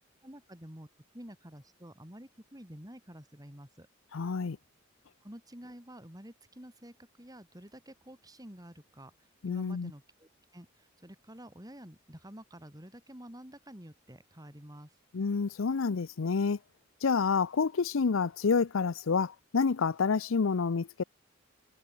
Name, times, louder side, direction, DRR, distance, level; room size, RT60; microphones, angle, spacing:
voice 1, 0.2-0.9 1.1-3.9 5.2-14.9, equal, 20° right, 5.8 m, -49 dB
voice 2, 4.1-4.6 9.4-9.9 15.1-16.6 17.0-21.0, left 5 dB, 90° left, 0.6 m, -28 dB
head